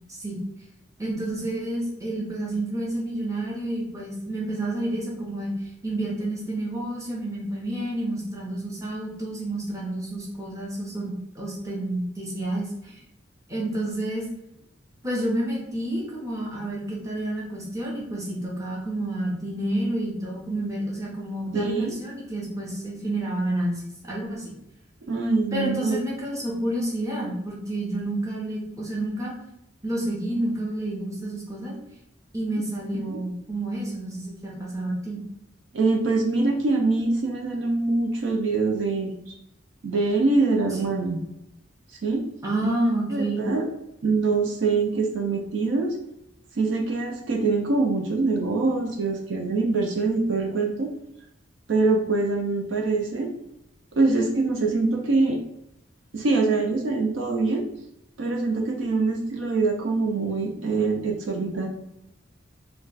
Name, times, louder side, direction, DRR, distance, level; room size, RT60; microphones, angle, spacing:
voice 1, 0.1-0.4 1.0-5.5 5.8-12.9 13.5-14.3 15.0-24.5 25.5-29.3 29.8-31.7 32.3-35.2 42.4-43.4, right 1 dB, 15° right, -5 dB, 0.8 m, -29 dB
voice 2, 21.5-21.9 25.1-26.0 33.0-33.2 35.7-39.3 39.8-41.2 42.0-42.2 42.6-42.7 43.1-43.7 44.0-45.9 46.6-50.9 51.7-53.3 53.9-55.4 56.1-57.7 58.2-61.7, right 3 dB, 65° right, 2 dB, 0.4 m, -24 dB
2.3 x 2.2 x 3.9 m, 0.81 s
head